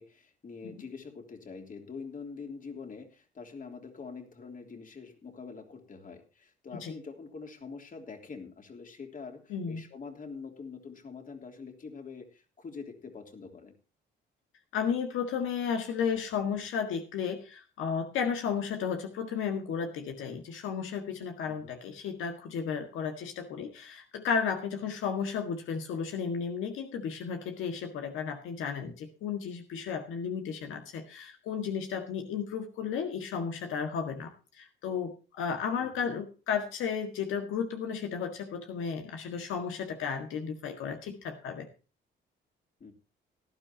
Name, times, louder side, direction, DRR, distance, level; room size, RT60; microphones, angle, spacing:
voice 1, 0.0-13.7 21.5-21.7 35.8-36.1 42.8-42.9, left 5 dB, 40° left, 5 dB, 3.2 m, -45 dB
voice 2, 9.5-9.8 14.7-41.7, left 6 dB, 85° left, 4 dB, 1.8 m, -33 dB
18.0 x 12.0 x 2.9 m, 0.33 s
cardioid pair, 90°, 20 cm